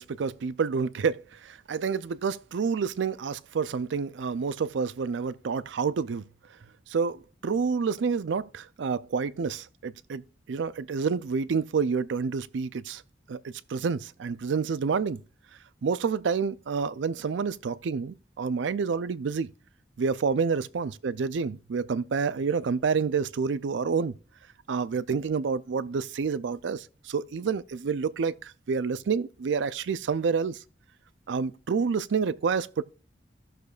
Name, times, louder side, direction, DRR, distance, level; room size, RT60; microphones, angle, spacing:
voice 1, 0.0-6.2 6.9-10.2 10.5-13.0 13.3-15.2 15.8-19.5 20.0-24.1 24.7-30.6 31.3-32.8, right 5 dB, 80° right, 0.4 m, -28 dB
16.0 x 6.6 x 2.4 m
head